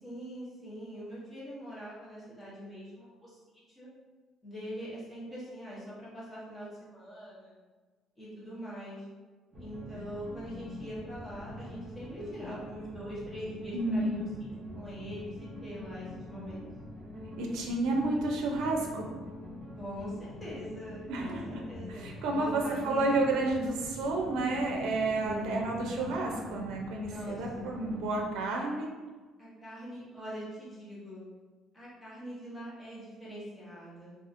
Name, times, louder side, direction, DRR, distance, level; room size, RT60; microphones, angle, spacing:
voice 1, 0.0-3.9 4.4-7.6 8.2-9.0 9.6-14.5 14.7-16.7 19.7-22.0 22.3-23.3 25.2-25.7 27.0-27.8 29.4-31.2 31.7-34.2, equal, 10° left, -9 dB, 0.8 m, -43 dB
sound 1, 9.5-28.3, left 1 dB, 25° right, 0.7 m, -44 dB
voice 2, 13.7-14.4 17.4-19.1 21.1-21.6 21.9-28.9, right 2 dB, 85° right, 0 dB, 0.4 m, -31 dB
2.7 x 2.4 x 2.4 m, 1.3 s
cardioid pair, 175°, 0 cm